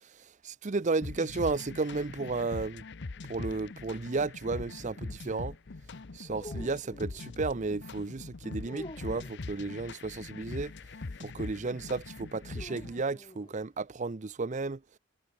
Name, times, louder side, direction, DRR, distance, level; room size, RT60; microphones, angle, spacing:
voice 1, 0.4-2.8 3.3-5.5 6.1-10.7 11.2-14.8, right 3 dB, 35° right, 0.5 m, -33 dB
sound 1, 1.0-13.0, left 3 dB, 55° left, 0.7 m, -42 dB
sound 2, 6.2-7.3 8.6-9.5 12.5-13.6, left 1 dB, 25° left, 3.7 m, -47 dB
head